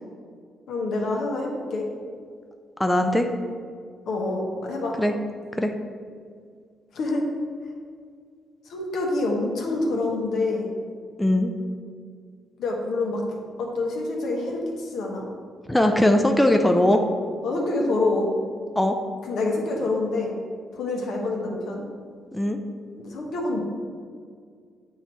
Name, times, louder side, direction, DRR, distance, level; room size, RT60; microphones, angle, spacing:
voice 1, 0.7-1.9 4.1-4.9 6.9-7.2 8.7-10.7 12.6-15.2 15.8-16.1 17.4-18.3 19.3-20.3 20.7-21.8 23.0-23.6, left 2 dB, 70° left, -1 dB, 1.1 m, -27 dB
voice 2, 2.8-3.3 5.0-5.1 5.6-5.7 11.2-11.5 15.7-17.0 18.8-19.0 22.3-22.6, left 1 dB, 10° left, 5 dB, 0.4 m, -20 dB
8.0 x 2.9 x 4.3 m, 2.1 s
cardioid pair, 90°, 0 cm